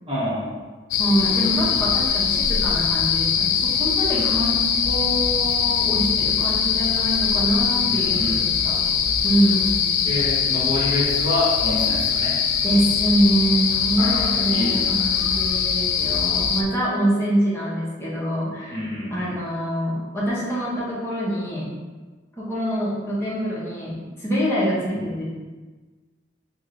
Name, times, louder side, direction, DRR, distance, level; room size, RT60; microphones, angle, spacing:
voice 1, 0.1-0.6 4.1-4.3 7.8-8.3 10.0-12.4 14.0-14.8 18.7-19.4 24.9-25.1, left 1 dB, 25° right, -10 dB, 0.9 m, -27 dB
sound 1, 0.9-16.6, left 7 dB, 85° left, 0.3 m, -22 dB
voice 2, 1.0-8.8 9.2-9.8 12.6-21.7 22.4-25.2, right 1 dB, 15° left, -8 dB, 0.8 m, -25 dB
3.0 x 2.9 x 2.6 m, 1.3 s
head